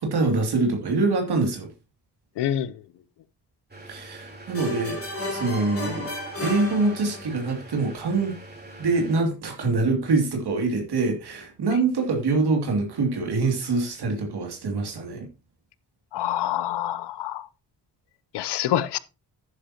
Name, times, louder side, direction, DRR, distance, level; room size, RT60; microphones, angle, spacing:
voice 1, 0.0-1.7 3.9-6.1 6.4-8.4 8.8-15.3, right 3 dB, 65° right, 2.7 m, -25 dB
voice 2, 2.4-2.7 16.1-17.5 18.3-19.0, left 11 dB, 75° left, 0.8 m, -26 dB
sound 1, 3.7-9.2, right 1 dB, 25° right, 3.6 m, -44 dB
sound 2, 4.5-7.5, left 2 dB, 35° left, 3.6 m, -33 dB
11.0 x 10.0 x 2.9 m
supercardioid pair, 50°, 41 cm